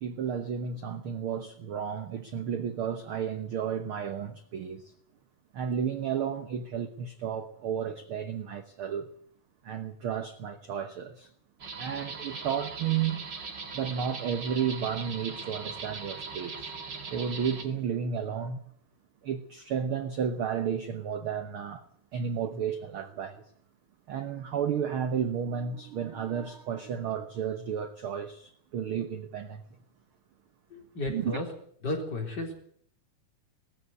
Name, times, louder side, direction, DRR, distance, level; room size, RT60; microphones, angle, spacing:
voice 1, 0.0-4.9 5.5-9.1 9.6-11.3 11.8-13.2 13.7-16.7 17.0-18.6 19.2-21.8 22.1-23.4 24.1-29.6 31.1-31.4, right 7 dB, 60° right, 1.4 m, -32 dB
sound 1, 11.6-17.6, right 4 dB, 40° right, 2.4 m, -40 dB
voice 2, 30.7-31.5 31.8-32.5, left 2 dB, 30° left, 4.4 m, -33 dB
20.0 x 14.0 x 9.5 m
omnidirectional pair, 3.7 m